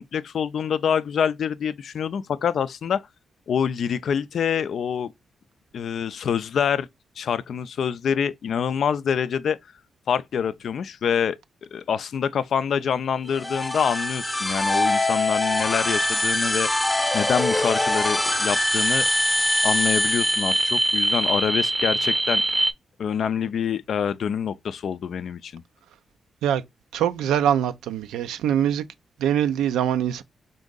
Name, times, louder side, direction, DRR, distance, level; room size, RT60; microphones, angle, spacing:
voice 1, 0.0-3.0 3.5-5.1 5.7-6.9 7.2-9.6 10.1-11.4 11.7-16.7 17.1-19.1 19.6-22.4 23.0-25.6, left 7 dB, 70° left, 0.3 m, -26 dB
sound 1, 13.3-21.0, left 1 dB, 15° left, 0.7 m, -24 dB
sound 2, 13.3-22.7, right 2 dB, 25° right, 0.6 m, -27 dB
voice 2, 26.9-28.8 29.2-30.2, right 10 dB, 85° right, 0.3 m, -23 dB
3.7 x 2.6 x 3.7 m
supercardioid pair, 45°, 0 cm